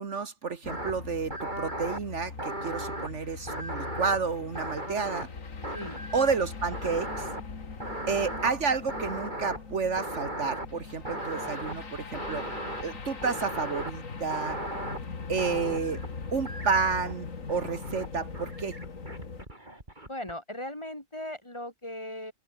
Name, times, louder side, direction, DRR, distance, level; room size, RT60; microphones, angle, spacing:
voice 1, 0.0-5.3 6.1-7.3 8.1-12.5 12.8-14.6 15.3-16.0 16.3-18.8, right 5 dB, 60° right, 1.7 m, -30 dB
sound 1, 0.6-19.5, left 4 dB, 80° left, 2.8 m, -41 dB
sound 2, 0.7-0.9 1.3-2.0 2.4-3.1 3.5-5.4 5.6-6.5 6.7-7.4 7.8-8.5 8.9-9.6 10.0-10.7 11.1-11.8 12.1-12.8 13.2-13.9 14.3-15.0 15.4-16.1 16.5-17.1 17.5-18.1 18.3-20.3, right 1 dB, 35° right, 6.1 m, -37 dB
voice 2, 20.0-22.3, left 1 dB, 20° left, 3.0 m, -38 dB
omnidirectional pair, 1.4 m